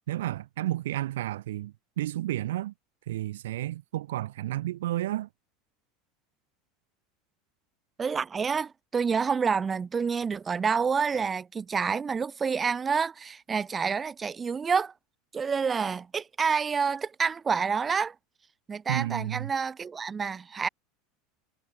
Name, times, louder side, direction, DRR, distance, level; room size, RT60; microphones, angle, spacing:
voice 1, 0.1-2.7 3.1-5.3 18.9-19.5, right 14 dB, 75° right, 4.0 m, -31 dB
voice 2, 8.0-14.9 15.3-18.1 18.7-20.7, right 6 dB, 25° right, 7.3 m, -28 dB
hypercardioid pair, 90°, 0 cm